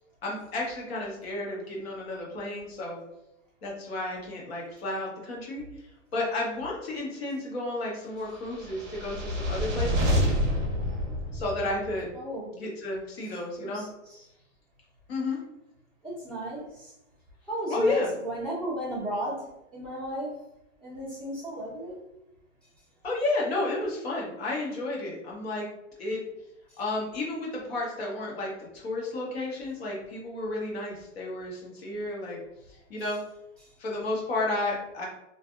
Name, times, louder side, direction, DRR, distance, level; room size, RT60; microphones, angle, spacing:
voice 1, 0.2-3.0 3.6-5.6 6.1-10.2 11.3-12.1 12.5-13.9 15.1-15.4 17.7-18.1 23.0-25.7 26.0-26.2 26.8-32.4 32.9-33.2 33.8-35.1, left 2 dB, 55° left, -3 dB, 1.1 m, -32 dB
sound 1, 8.5-12.0, equal, 40° right, 0.7 m, -28 dB
voice 2, 12.1-12.5 13.6-14.2 16.0-16.9 17.5-20.4 20.8-22.0, right 1 dB, ahead, -9 dB, 0.7 m, -35 dB
2.6 x 2.5 x 2.4 m, 0.85 s
hypercardioid pair, 155°, 38 cm